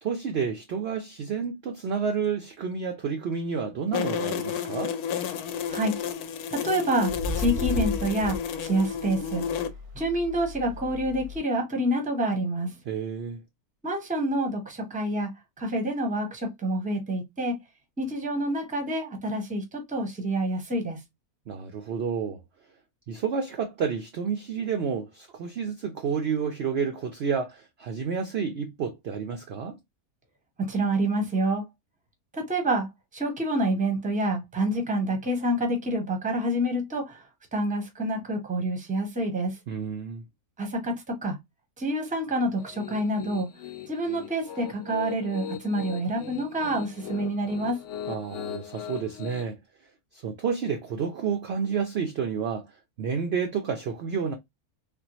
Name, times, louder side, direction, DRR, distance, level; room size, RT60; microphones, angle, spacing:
voice 1, 0.0-4.9 12.9-13.4 21.5-22.4 23.1-29.8 39.7-40.2 48.1-49.6 50.2-52.7 53.0-54.3, right 6 dB, 65° right, 0.6 m, -30 dB
sound 1, 3.9-9.7, left 8 dB, 85° left, 1.1 m, -31 dB
sound 2, 5.5-5.9 7.0-11.4, left 2 dB, 80° right, 1.2 m, -35 dB
voice 2, 6.5-9.4 9.9-12.7 13.8-15.3 15.6-17.6 18.0-21.0 30.6-31.6 32.3-32.9 33.1-37.2 37.5-39.5 40.6-41.4 41.8-43.5 43.9-47.8, right 1 dB, 5° right, 0.7 m, -27 dB
Piano, 42.6-49.4, left 9 dB, 65° left, 0.8 m, -39 dB
3.5 x 2.1 x 2.9 m
omnidirectional pair, 1.6 m